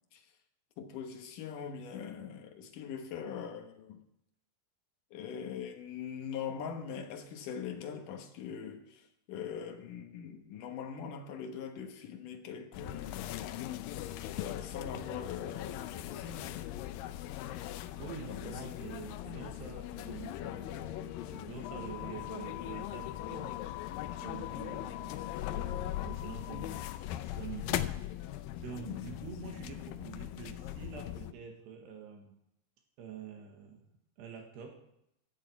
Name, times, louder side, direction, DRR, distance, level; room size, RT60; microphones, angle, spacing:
voice 1, 0.8-4.0 5.1-13.7 14.4-16.5 18.2-18.6, left 7 dB, 65° left, 2.4 m, -42 dB
sound 1, 12.7-31.3, left 13 dB, 90° left, 2.0 m, -39 dB
voice 2, 18.0-23.6 24.2-28.0 28.6-32.4 33.0-33.9 34.2-34.9, right 8 dB, 75° right, 3.8 m, -47 dB
16.5 x 12.0 x 4.5 m
omnidirectional pair, 4.9 m